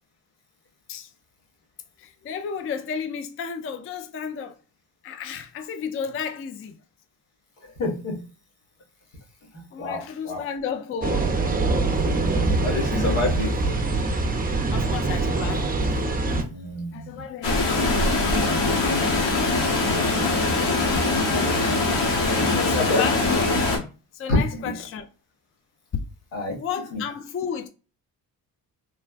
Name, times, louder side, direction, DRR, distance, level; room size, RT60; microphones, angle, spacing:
voice 1, 2.0-4.6 5.0-6.8 9.7-11.3 13.0-13.2 14.2-16.1 16.9-18.3 22.4-23.7 24.1-25.1 26.6-27.7, left 7 dB, 30° left, 0.4 m, -33 dB
voice 2, 7.6-8.2 9.5-10.4 12.6-13.7 16.5-17.2 19.8-20.5 22.8-23.0 24.6-24.7 26.3-26.6 26.9-27.0, left 2 dB, 75° left, 1.4 m, -29 dB
sound 1, 11.0-16.4, right 3 dB, 20° right, 0.6 m, -24 dB
Water, 17.4-23.8, left 2 dB, 60° left, 1.3 m, -22 dB
3.3 x 2.1 x 2.4 m
hypercardioid pair, 50°, 49 cm